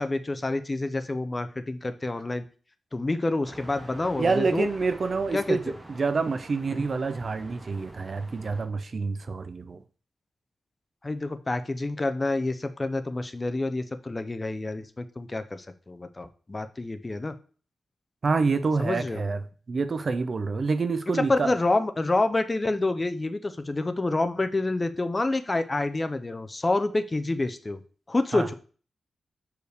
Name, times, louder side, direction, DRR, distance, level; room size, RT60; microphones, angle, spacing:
voice 1, 0.0-2.4 2.9-4.7 5.3-5.6 11.0-17.3 18.8-19.2 21.1-27.8 28.1-28.5, left 2 dB, 20° left, 0.4 m, -28 dB
sound 1, 3.4-8.7, right 1 dB, 15° right, 0.9 m, -46 dB
voice 2, 4.2-9.8 18.2-19.4 19.7-21.5 28.3-28.5, right 4 dB, 40° right, 0.5 m, -27 dB
6.5 x 4.6 x 3.3 m
wide cardioid pair, 165°, 0 cm